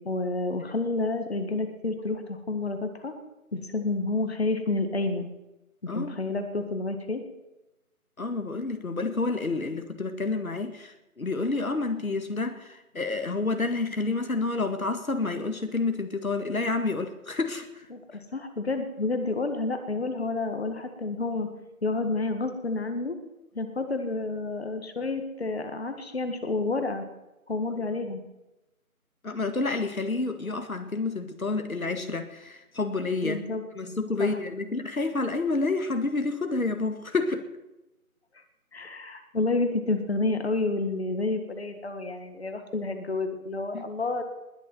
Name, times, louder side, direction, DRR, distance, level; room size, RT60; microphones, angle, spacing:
voice 1, 0.0-3.1 3.5-5.3 5.9-7.2 17.9-21.5 21.8-23.2 23.6-27.0 27.5-28.2 33.2-33.6 34.2-34.3 38.7-44.2, left 3 dB, 45° left, 7 dB, 1.9 m, -29 dB
voice 2, 5.9-6.2 8.2-17.9 29.2-33.4 33.7-37.5 43.7-43.9, left 3 dB, 70° left, 7 dB, 1.9 m, -29 dB
20.5 x 7.1 x 9.1 m, 0.97 s
figure-of-eight pair, 165°, 44 cm